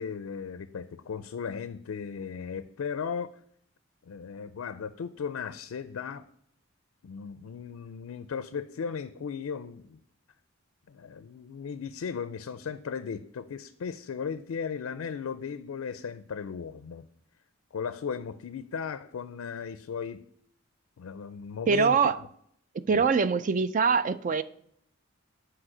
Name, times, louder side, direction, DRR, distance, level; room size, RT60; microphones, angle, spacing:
voice 1, 0.0-3.4 4.1-6.2 7.0-10.0 10.9-17.1 17.7-20.2 21.0-22.1 22.9-23.0, left 6 dB, 80° left, 0.4 m, -36 dB
voice 2, 21.7-22.2 22.9-24.4, right 5 dB, 35° right, 0.3 m, -23 dB
6.3 x 4.8 x 6.1 m
head